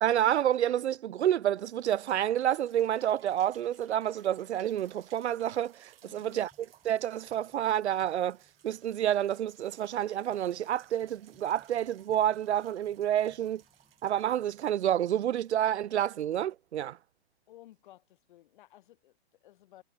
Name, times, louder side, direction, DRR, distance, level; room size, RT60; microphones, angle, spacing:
voice 1, 0.0-6.5 6.8-8.4 8.6-13.6 14.0-17.0, right 11 dB, 85° right, 0.6 m, -29 dB
sound 1, 1.0-1.1 1.5-17.2 17.8-17.9, right 11 dB, 60° right, 5.7 m, -62 dB
sound 2, 2.3-17.0, left 1 dB, ahead, 6.9 m, -72 dB
voice 2, 6.0-6.4 17.5-19.8, left 14 dB, 50° left, 3.9 m, -56 dB
hypercardioid pair, 150°, 32 cm